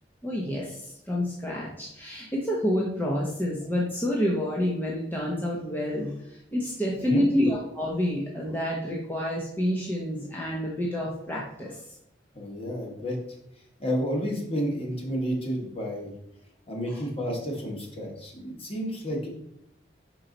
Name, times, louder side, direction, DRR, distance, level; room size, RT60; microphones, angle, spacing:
voice 1, 0.2-11.9 16.9-17.0, left 1 dB, 10° left, -4 dB, 0.8 m, -28 dB
voice 2, 12.3-13.2 13.8-16.1 16.7-19.3, equal, 30° left, -1 dB, 1.5 m, -31 dB
5.5 x 4.5 x 3.9 m, 0.81 s
head